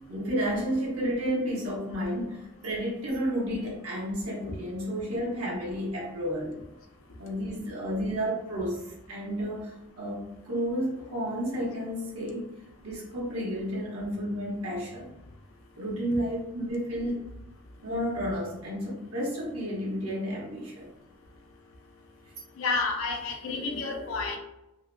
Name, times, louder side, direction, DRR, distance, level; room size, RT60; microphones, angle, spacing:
voice 1, 0.0-6.6 7.2-12.5 12.8-15.1 15.8-17.2 17.8-20.9, equal, 90° right, -4 dB, 0.9 m, -31 dB
voice 2, 22.6-24.4, left 3 dB, 70° left, 2 dB, 0.4 m, -30 dB
2.7 x 2.1 x 2.4 m, 0.91 s
head